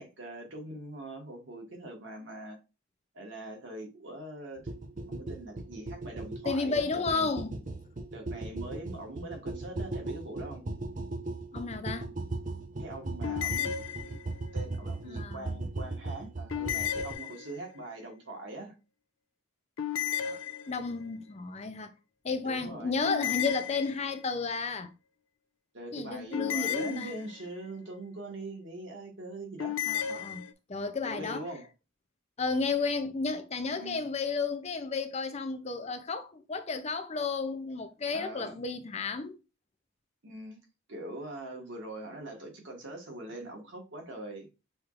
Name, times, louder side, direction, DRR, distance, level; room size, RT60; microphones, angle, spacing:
voice 1, 0.0-2.6 3.1-4.7 5.1-7.3 8.1-10.6 12.8-13.7 14.1-14.2 14.5-18.7 22.4-23.0 25.7-29.7 31.0-31.7 33.8-34.1 38.1-38.6 40.2-40.6 40.9-44.5, right 1 dB, 65° right, 1.6 m, -42 dB
sound 1, 4.7-17.1, right 2 dB, 40° right, 0.6 m, -37 dB
voice 2, 6.4-7.5 11.5-12.1 15.0-15.5 20.2-20.4 20.7-21.9 22.2-24.9 25.9-27.2 29.8-30.4 30.7-31.4 32.4-39.4, left 4 dB, 35° left, 0.5 m, -32 dB
sound 2, 13.2-14.5 16.5-17.8 19.8-21.1 23.0-24.3 26.3-27.6 29.6-30.5, left 9 dB, 80° left, 0.5 m, -34 dB
6.3 x 3.1 x 2.5 m
head